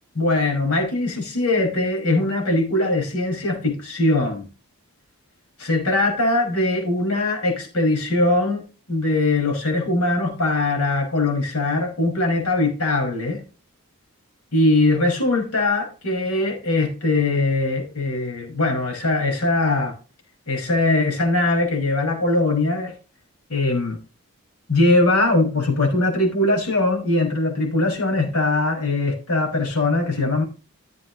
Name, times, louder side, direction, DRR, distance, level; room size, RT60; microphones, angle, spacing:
voice 1, 0.2-4.5 5.6-13.4 14.5-19.9 20.5-22.9 23.5-24.0 24.7-30.4, left 2 dB, 85° left, 5.6 m, -21 dB
16.0 x 7.6 x 3.1 m
head